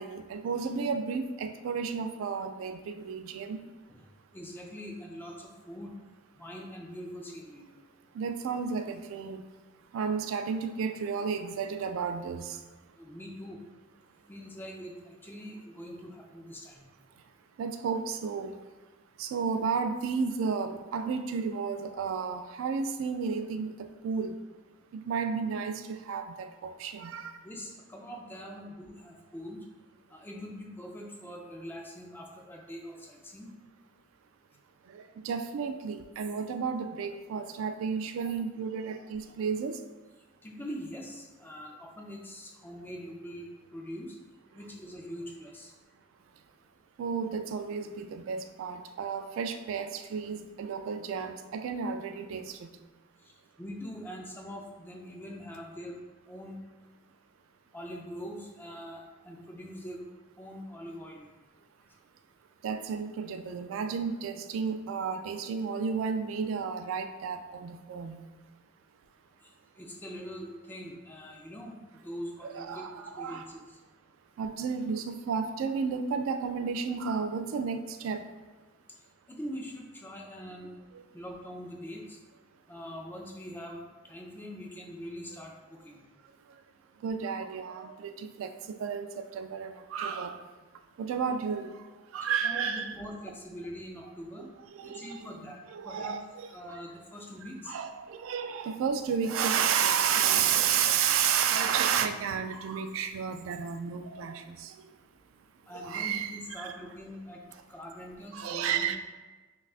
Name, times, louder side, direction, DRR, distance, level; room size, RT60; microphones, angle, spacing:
voice 1, 0.0-3.6 8.1-9.4 9.9-12.6 17.6-18.5 19.2-24.4 24.9-27.4 28.4-28.5 34.9-39.8 47.0-52.7 62.6-68.2 72.4-73.5 74.4-78.2 80.9-81.0 87.0-90.4 91.0-91.8 92.1-92.9 94.7-96.8 97.7-104.7 105.7-106.7 108.3-109.0, right 6 dB, 85° right, 8 dB, 0.3 m, -32 dB
voice 2, 4.3-5.9 6.4-7.7 13.0-13.6 14.3-16.8 27.4-29.6 30.1-33.5 40.4-44.2 44.5-45.7 53.6-56.0 56.3-56.6 57.7-60.0 60.4-61.3 69.4-69.5 69.8-71.8 72.0-72.9 73.2-73.6 79.3-80.7 81.1-82.2 82.7-86.0 92.4-94.5 94.8-96.2 96.5-97.7 105.7-107.4 107.7-109.0, equal, 10° left, -1 dB, 0.4 m, -43 dB
5.6 x 2.3 x 2.4 m, 1.2 s
head